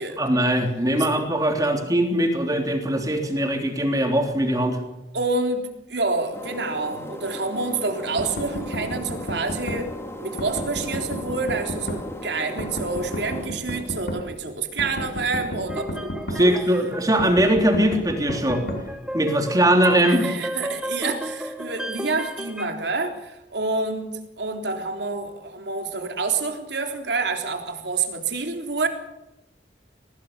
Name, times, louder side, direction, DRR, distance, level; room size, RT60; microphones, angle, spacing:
voice 1, 0.2-4.8 16.3-18.6 19.1-20.3, right 1 dB, 20° right, 4 dB, 3.4 m, -21 dB
voice 2, 5.1-9.9 10.2-16.6 20.1-28.9, right 3 dB, 75° right, 5 dB, 3.6 m, -28 dB
sound 1, 6.3-13.5, left 1 dB, 15° left, 2.6 m, -37 dB
sound 2, 8.2-9.8 10.4-12.0 12.6-14.2 14.8-16.4 17.2-18.8, equal, 65° left, 6.2 m, -31 dB
sound 3, 15.7-22.7, equal, 5° right, 1.5 m, -34 dB
24.0 x 19.0 x 6.8 m, 0.92 s
head